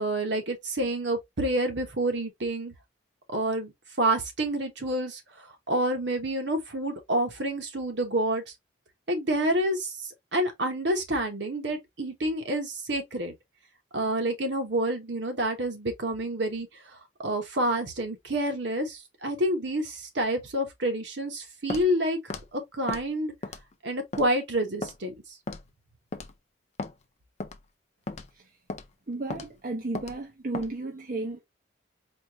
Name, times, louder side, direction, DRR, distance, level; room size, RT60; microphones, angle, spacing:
voice 1, 0.0-2.7 3.3-3.7 4.0-5.2 5.7-8.4 9.1-9.9 10.3-13.3 13.9-16.7 17.2-22.2 22.5-23.3 23.8-25.1, right 1 dB, 60° right, 1.2 m, -28 dB
Walk footsteps, 21.7-21.9 22.3-22.5 22.9-23.1 23.4-23.7 24.1-24.3 24.8-25.0 25.5-25.7 26.1-26.3 26.8-26.9 27.4-27.6 28.1-28.3 28.7-28.9 29.3-29.5 30.0-30.2 30.5-30.7, left 3 dB, 35° left, 0.4 m, -35 dB
voice 2, 29.1-31.4, right 2 dB, 45° right, 0.6 m, -33 dB
4.4 x 2.5 x 3.0 m
head